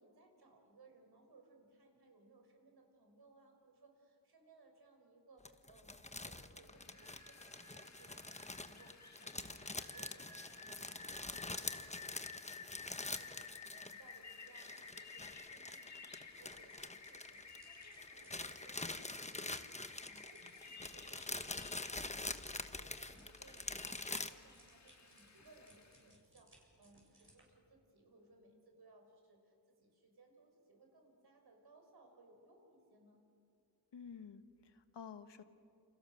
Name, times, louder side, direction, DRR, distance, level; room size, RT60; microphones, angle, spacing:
voice 1, 0.0-33.2, right 2 dB, 65° right, 3 dB, 5.8 m, -65 dB
sound 1, 5.5-14.2 14.4-17.8 18.0-24.3, left 2 dB, 15° left, 1.1 m, -45 dB
Rain, 6.7-26.1, left 4 dB, 40° left, 1.8 m, -55 dB
sound 2, 16.1-27.4, right 1 dB, 30° right, 7.0 m, -68 dB
voice 2, 33.9-35.4, left 6 dB, 85° left, 9 dB, 1.5 m, -51 dB
29.0 x 28.5 x 6.6 m, 2.4 s
wide cardioid pair, 95°, 41 cm